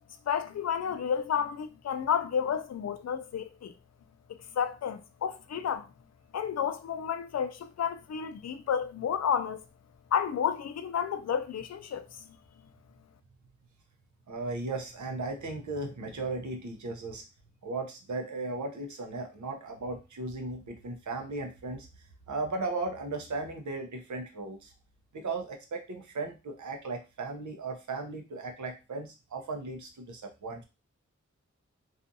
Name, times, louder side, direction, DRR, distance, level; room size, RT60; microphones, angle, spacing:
voice 1, 0.3-3.7 4.6-5.9 6.3-9.6 10.1-12.0, left 8 dB, 60° left, 0.4 m, -31 dB
voice 2, 14.3-17.2 17.6-21.9 22.3-24.7 25.1-30.6, right 3 dB, 75° right, 0.7 m, -36 dB
2.4 x 2.4 x 2.6 m
cardioid pair, 55°, 30 cm